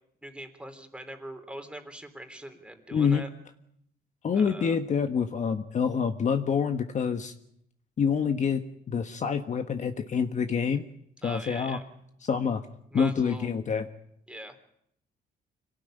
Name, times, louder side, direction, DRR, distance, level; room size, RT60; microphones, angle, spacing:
voice 1, 0.2-3.3 4.3-4.8 11.2-11.8 12.9-13.5 14.3-14.6, right 1 dB, 5° right, 6 dB, 3.4 m, -42 dB
voice 2, 2.9-3.2 4.2-7.3 8.0-10.8 11.2-11.8 12.2-12.6 12.9-13.8, left 6 dB, 45° left, 6 dB, 1.4 m, -27 dB
25.5 x 18.0 x 9.1 m, 0.74 s
cardioid pair, 120°, 18 cm